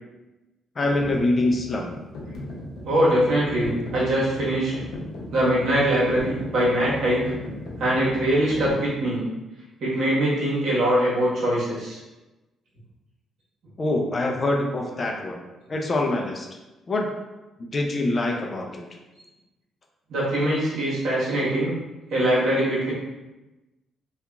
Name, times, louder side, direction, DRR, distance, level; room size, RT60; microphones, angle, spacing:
sound 1, 0.8-8.8, left 1 dB, 80° left, 0.6 m, -37 dB
voice 1, 0.8-1.9 13.8-15.4 15.7-16.5 16.9-17.1 17.7-18.8, left 2 dB, 35° left, 1 dB, 0.4 m, -24 dB
voice 2, 2.8-4.7 5.3-7.2 7.8-9.3 9.8-12.0 20.1-21.8 22.1-22.9, right 1 dB, 70° right, -8 dB, 1.3 m, -22 dB
2.8 x 2.3 x 2.3 m, 1.1 s
cardioid pair, 90°, 0 cm